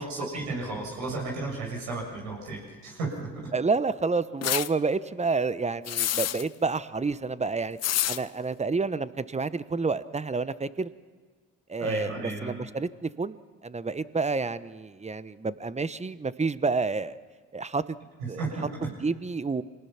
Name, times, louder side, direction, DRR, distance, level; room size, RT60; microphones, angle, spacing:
voice 1, 0.0-3.3 11.8-12.5 18.4-18.7, right 3 dB, 90° right, -2 dB, 7.5 m, -33 dB
voice 2, 3.5-7.8 8.1-10.9 11.7-13.4 13.6-17.2 17.5-18.0 18.3-18.4 18.8-19.6, right 4 dB, 20° right, 15 dB, 1.0 m, -29 dB
sound 1, 4.4-4.7 5.9-6.5 7.8-8.2, left 12 dB, 50° left, 0.7 m, -27 dB
26.0 x 19.0 x 5.9 m, 1.5 s
hypercardioid pair, 55°, 34 cm